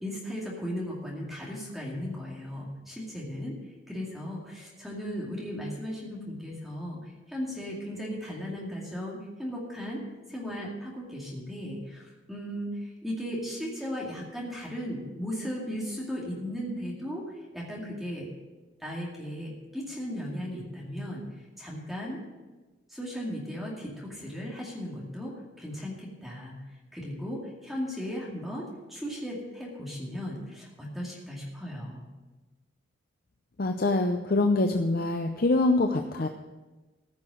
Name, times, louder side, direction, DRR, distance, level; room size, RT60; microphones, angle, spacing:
voice 1, 0.0-3.6 3.9-10.0 10.3-17.2 17.5-18.3 18.8-21.3 21.6-22.2 22.9-26.6 26.9-32.0, equal, ahead, -4 dB, 2.4 m, -36 dB
voice 2, 33.6-36.3, left 2 dB, 45° left, 5 dB, 0.6 m, -24 dB
15.0 x 5.9 x 7.7 m, 1.2 s
head